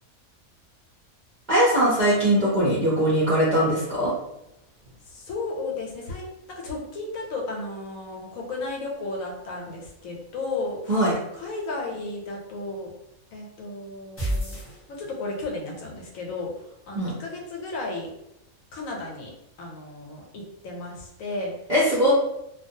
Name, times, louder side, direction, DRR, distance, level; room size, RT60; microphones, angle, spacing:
voice 1, 1.5-4.1 10.9-11.1 16.9-17.1 21.7-22.1, right 1 dB, 55° right, -8 dB, 0.5 m, -21 dB
voice 2, 5.1-12.9 13.3-14.6 14.9-18.1 18.7-19.3 19.6-21.5 22.0-22.1, left 2 dB, 75° left, -1 dB, 1.0 m, -34 dB
sound 1, 14.2-15.4, equal, 20° left, 0.4 m, -30 dB
2.3 x 2.2 x 2.6 m, 0.84 s
omnidirectional pair, 1.5 m